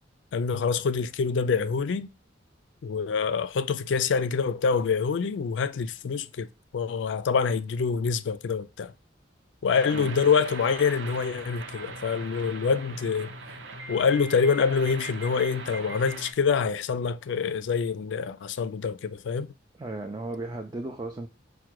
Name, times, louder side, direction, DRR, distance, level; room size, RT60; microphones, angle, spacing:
voice 1, 0.3-2.1 2.8-6.5 6.7-8.9 9.6-13.3 13.9-19.5, left 5 dB, 70° left, 0.3 m, -26 dB
sound 1, 9.7-16.3, right 3 dB, 65° right, 0.7 m, -40 dB
voice 2, 19.8-21.3, right 2 dB, 20° right, 0.4 m, -35 dB
4.8 x 2.2 x 4.5 m
head